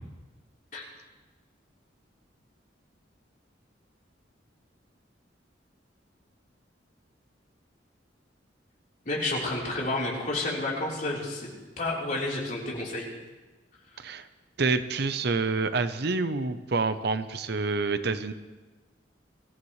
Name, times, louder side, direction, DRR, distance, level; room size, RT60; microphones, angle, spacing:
voice 1, 9.0-11.5 11.8-13.1, left 2 dB, 45° left, -4 dB, 4.0 m, -30 dB
voice 2, 14.0-14.3 14.6-18.3, right 3 dB, 60° right, 11 dB, 0.7 m, -27 dB
24.5 x 14.5 x 3.2 m, 1.2 s
head